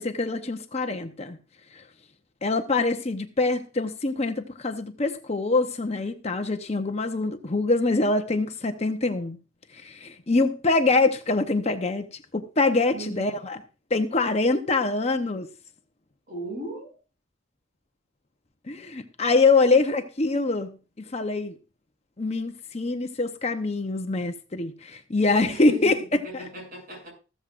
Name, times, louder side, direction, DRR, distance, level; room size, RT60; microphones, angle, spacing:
voice 1, 0.0-1.4 1.7-1.8 2.4-9.4 9.7-12.1 12.3-13.6 13.9-15.5 18.7-21.5 22.2-26.0 26.3-26.4, left 3 dB, 35° left, 0.8 m, -24 dB
voice 2, 12.9-13.4 16.3-16.9 25.5-27.1, right 2 dB, 45° right, 7.1 m, -38 dB
14.5 x 13.5 x 2.5 m
head